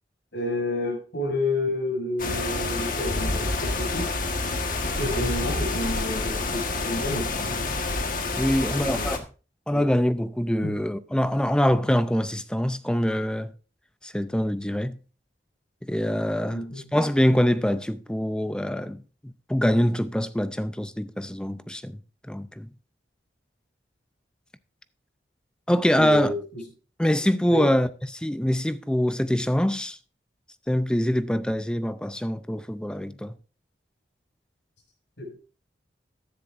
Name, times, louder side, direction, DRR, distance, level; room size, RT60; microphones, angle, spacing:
voice 1, 0.3-4.1 4.9-7.3 8.5-9.1 9.7-9.8 10.6-10.8 16.5-16.8 25.9-26.6 27.5-27.7 35.2-35.4, left 1 dB, 80° left, 6.6 m, -30 dB
sound 1, 2.2-9.2, left 3 dB, 50° left, 1.4 m, -28 dB
voice 2, 8.4-9.2 9.7-13.5 14.0-15.0 15.8-16.6 16.9-22.0 22.3-22.7 25.7-26.3 27.0-30.0 30.7-33.4, equal, 5° left, 0.4 m, -24 dB
14.5 x 10.5 x 2.6 m
head